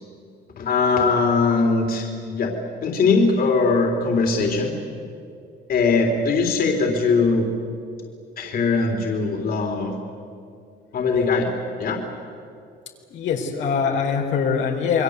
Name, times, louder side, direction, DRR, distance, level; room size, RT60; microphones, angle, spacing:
voice 1, 0.6-2.5 2.8-4.7 5.7-7.5 8.4-9.9 10.9-11.5 11.8-12.0, left 4 dB, 55° left, 2 dB, 3.6 m, -20 dB
voice 2, 13.1-15.0, left 6 dB, 80° left, 1 dB, 4.1 m, -23 dB
28.5 x 22.5 x 8.2 m, 2.5 s
cardioid pair, 130°, 19 cm